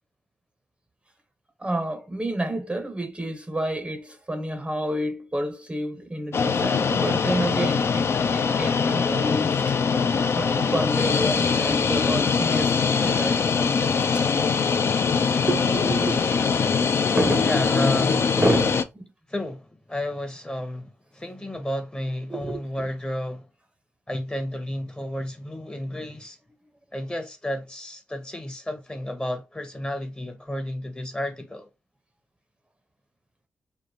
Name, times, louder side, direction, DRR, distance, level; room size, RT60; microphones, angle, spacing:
voice 1, 1.6-9.8 10.3-14.2 15.5-16.4 17.0-17.5 18.4-19.1 22.3-22.6, right 1 dB, 20° right, 0.6 m, -29 dB
sound 1, 6.3-18.8, left 5 dB, 50° left, 0.3 m, -22 dB
voice 2, 17.4-18.3 19.3-23.5 24.1-26.4 26.9-31.7, left 1 dB, 15° left, 0.8 m, -32 dB
3.1 x 2.1 x 2.7 m
supercardioid pair, 50°, 6 cm